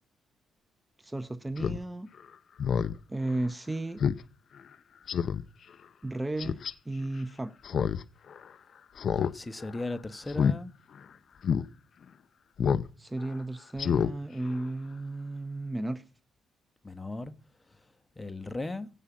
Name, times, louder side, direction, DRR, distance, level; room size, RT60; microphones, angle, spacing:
voice 1, 1.0-2.1 3.1-4.0 6.0-7.5 13.0-16.0, right 2 dB, 15° right, 0.7 m, -34 dB
Speech synthesizer, 1.6-1.8 2.2-2.3 2.6-2.9 3.3-3.4 4.0-4.2 4.6-4.7 5.1-5.4 6.4-6.7 7.6-8.0 8.3-8.4 9.0-9.3 9.6-9.8 10.3-10.6 11.0-11.1 11.4-11.6 12.6-12.9 13.2-13.3 13.8-14.1 14.5-14.6, left 7 dB, 55° left, 0.6 m, -27 dB
voice 2, 9.1-10.7 16.8-17.3 17.7-17.9 18.1-18.9, left 2 dB, 20° left, 1.2 m, -37 dB
16.0 x 5.6 x 8.6 m
cardioid pair, 90°, 0 cm